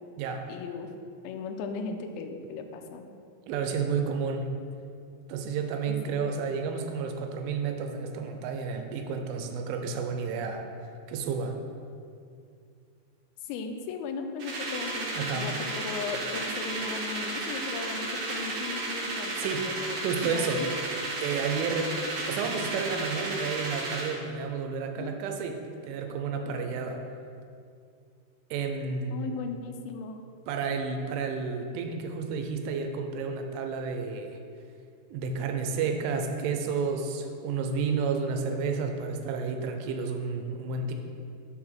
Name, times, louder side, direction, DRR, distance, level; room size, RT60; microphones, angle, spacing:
voice 1, 0.5-0.9 1.2-3.1 5.9-6.2 13.4-20.7 25.0-25.2 29.1-30.2, left 4 dB, 85° left, 5 dB, 2.6 m, -37 dB
voice 2, 3.5-4.5 5.3-10.6 11.1-11.6 15.2-15.5 19.4-19.7 20.0-20.6 21.2-21.9 22.3-27.0 28.5-29.4 30.5-34.4 35.1-40.9, right 5 dB, 85° right, 5 dB, 3.0 m, -31 dB
sound 1, 14.4-24.1, right 2 dB, 65° right, 2.5 m, -33 dB
6.9 x 4.8 x 5.7 m, 2.4 s
omnidirectional pair, 5.7 m